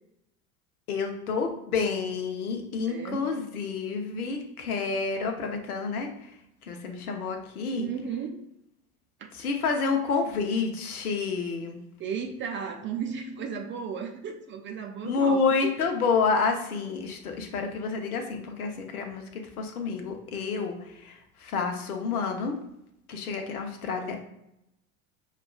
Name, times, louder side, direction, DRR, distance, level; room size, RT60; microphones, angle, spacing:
voice 1, 0.9-6.3 6.6-7.9 9.3-11.8 15.0-22.6 23.1-24.2, left 5 dB, 80° left, 4 dB, 0.9 m, -29 dB
voice 2, 2.9-3.2 7.8-8.4 9.2-9.3 12.0-15.7, right 7 dB, 25° right, 3 dB, 0.5 m, -34 dB
5.7 x 2.4 x 2.3 m, 0.81 s
figure-of-eight pair, 80°, 44 cm